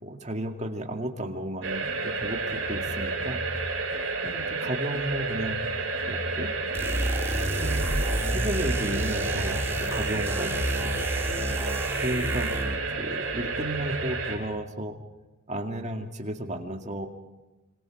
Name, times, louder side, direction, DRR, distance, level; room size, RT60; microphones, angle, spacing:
voice 1, 0.0-3.4 4.2-5.6 6.1-6.5 6.9-7.1 7.4-7.9 8.2-10.9 12.0-12.6 12.9-14.9 15.5-17.1, right 1 dB, 30° right, 4 dB, 2.2 m, -33 dB
sound 1, 1.6-14.4, right 3 dB, 60° right, 6.1 m, -30 dB
sound 2, 6.7-12.9, right 1 dB, 10° right, 1.6 m, -30 dB
26.0 x 25.0 x 4.9 m, 1.1 s
head